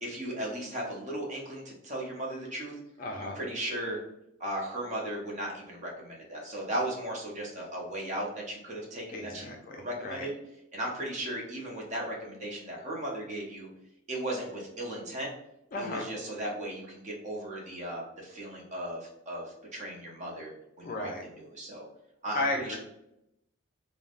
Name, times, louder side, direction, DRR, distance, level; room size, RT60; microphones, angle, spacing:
voice 1, 0.0-2.7 3.2-4.0 4.4-10.3 10.7-13.7 14.1-15.3 15.8-21.9 22.2-22.8, right 1 dB, 35° right, -2 dB, 0.6 m, -36 dB
voice 2, 3.0-3.4 9.1-10.3 15.7-16.1 20.8-21.2 22.3-22.8, left 2 dB, 40° left, 2 dB, 0.4 m, -34 dB
3.1 x 2.0 x 2.4 m, 0.82 s
head